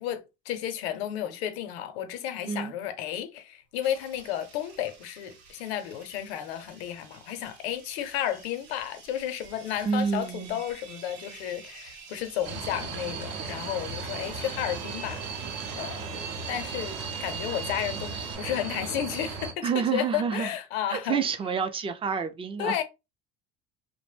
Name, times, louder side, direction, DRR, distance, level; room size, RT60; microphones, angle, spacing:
voice 1, 0.0-15.2 15.7-16.1 16.5-21.3 22.6-22.8, left 10 dB, 85° left, 0.6 m, -32 dB
sound 1, 3.8-18.4, right 5 dB, 75° right, 1.0 m, -45 dB
voice 2, 9.8-10.6 19.6-20.5 20.9-22.8, right 6 dB, 20° right, 0.4 m, -28 dB
sound 2, 12.4-19.5, right 4 dB, 55° right, 0.7 m, -36 dB
2.5 x 2.0 x 3.2 m
supercardioid pair, 85°, 31 cm